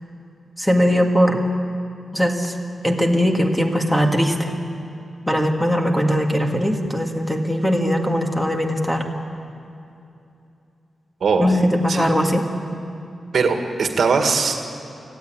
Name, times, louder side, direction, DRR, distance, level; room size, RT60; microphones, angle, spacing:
voice 1, 0.6-1.5 2.1-2.6 2.8-4.5 5.3-9.0 11.4-12.5, equal, 5° left, 2 dB, 1.9 m, -20 dB
voice 2, 13.3-14.7, right 5 dB, 65° right, 4 dB, 1.9 m, -20 dB
24.5 x 16.0 x 8.9 m, 2.7 s
wide cardioid pair, 145°, 0 cm